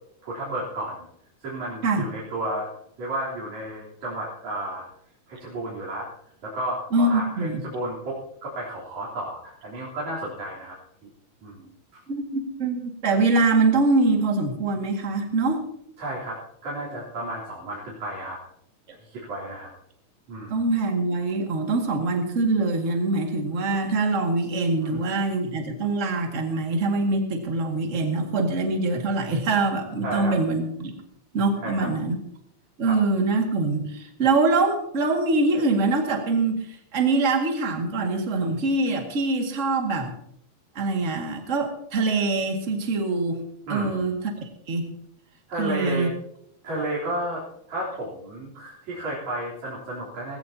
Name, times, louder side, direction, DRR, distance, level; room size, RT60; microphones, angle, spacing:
voice 1, 0.2-1.0 1.4-2.7 3.0-4.8 5.3-6.1 6.4-10.7 11.4-12.0 16.0-18.4 19.0-19.7 20.3-20.6 24.8-24.9 30.0-30.4 31.6-31.9 32.8-33.0 43.7-44.0 45.5-46.1 46.6-47.4 47.7-50.4, right 1 dB, 65° right, -7 dB, 4.9 m, -32 dB
voice 2, 6.9-7.6 12.1-15.6 20.5-30.9 31.3-32.2 32.8-36.6 36.9-40.1 40.8-43.4 43.7-44.9 45.6-46.1, right 3 dB, 30° right, 2 dB, 1.9 m, -24 dB
18.5 x 16.5 x 2.8 m, 0.73 s
omnidirectional pair, 3.6 m